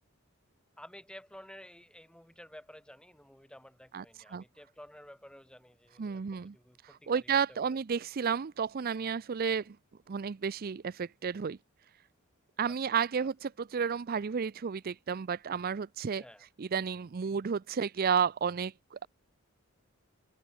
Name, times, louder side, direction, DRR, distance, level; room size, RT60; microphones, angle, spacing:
voice 1, 0.8-7.8 12.6-12.8 13.2-13.3 16.2-16.5, left 1 dB, 5° left, 4.6 m, -53 dB
voice 2, 3.9-4.4 6.0-6.5 6.8-9.8 10.1-11.6 12.6-16.2 16.6-19.1, right 6 dB, 45° right, 0.4 m, -32 dB
head